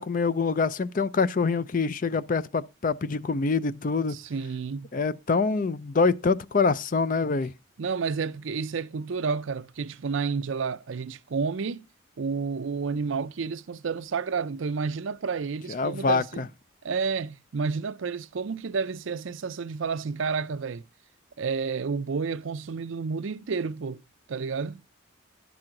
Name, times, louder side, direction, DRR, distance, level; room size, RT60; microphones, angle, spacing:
voice 1, 0.0-4.2 4.9-7.5 15.7-16.5, left 4 dB, 40° left, 0.5 m, -25 dB
voice 2, 4.1-4.9 7.8-11.8 12.2-16.5 16.8-20.8 21.4-24.0 24.3-24.8, right 5 dB, 65° right, 0.5 m, -30 dB
10.5 x 6.0 x 3.8 m
head